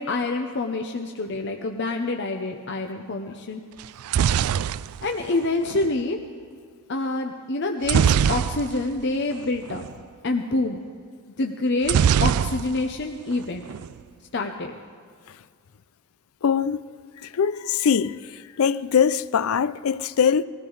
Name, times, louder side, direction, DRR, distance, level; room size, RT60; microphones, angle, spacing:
voice 1, 0.0-3.6 5.0-6.2 6.9-9.8 10.2-10.8 11.4-13.7 14.3-14.7, left 2 dB, 50° left, 0.8 m, -27 dB
sound 1, 3.8-5.9 7.8-9.0 9.3-9.4 9.7-9.9 11.8-13.0 13.3-13.9, right 8 dB, 80° right, 0.3 m, -22 dB
voice 2, 16.4-16.8 17.2-18.2 18.6-20.4, left 7 dB, 70° left, 0.4 m, -22 dB
21.0 x 15.5 x 4.0 m
head